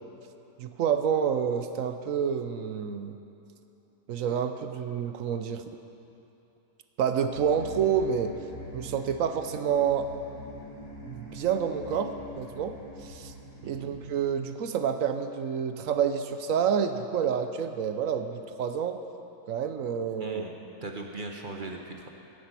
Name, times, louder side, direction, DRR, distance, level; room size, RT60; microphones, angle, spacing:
voice 1, 0.6-3.1 4.1-5.6 7.0-8.3 8.7-10.1 11.0-13.3 13.6-19.0 19.5-20.4, right 7 dB, 65° right, 8 dB, 0.9 m, -28 dB
sound 1, 7.3-14.1, equal, 55° left, 3.4 m, -44 dB
voice 2, 13.6-13.9 20.2-20.5 20.8-22.1, right 3 dB, 40° right, 2 dB, 0.8 m, -39 dB
10.0 x 10.0 x 8.2 m, 2.9 s
omnidirectional pair, 1.7 m